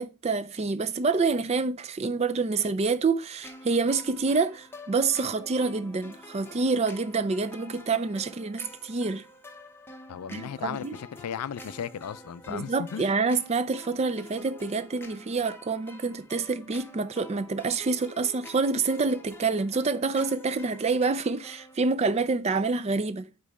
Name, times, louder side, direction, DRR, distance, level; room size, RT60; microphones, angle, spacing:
voice 1, 0.0-9.2 10.3-11.0 12.5-23.3, right 4 dB, 30° right, 0.4 m, -27 dB
sound 1, 3.4-21.8, left 1 dB, 10° left, 0.7 m, -48 dB
voice 2, 10.1-13.1, left 8 dB, 90° left, 0.4 m, -36 dB
5.1 x 4.7 x 4.2 m
head